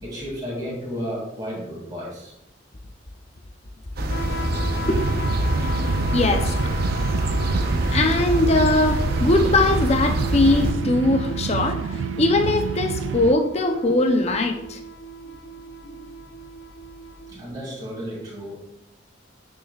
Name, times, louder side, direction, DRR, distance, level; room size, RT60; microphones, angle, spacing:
voice 1, 0.0-2.3 15.5-15.6 15.8-16.0 17.3-18.6, equal, 20° right, -6 dB, 2.4 m, -33 dB
sound 1, 4.0-10.7, right 1 dB, 55° right, 0.8 m, -25 dB
sound 2, 4.1-17.3, right 1 dB, 70° left, 0.7 m, -37 dB
sound 3, 4.9-13.3, right 6 dB, 85° right, 0.3 m, -29 dB
voice 2, 6.1-6.7 7.9-14.8, left 2 dB, 35° left, 5 dB, 0.6 m, -21 dB
9.5 x 6.3 x 2.4 m, 0.84 s
head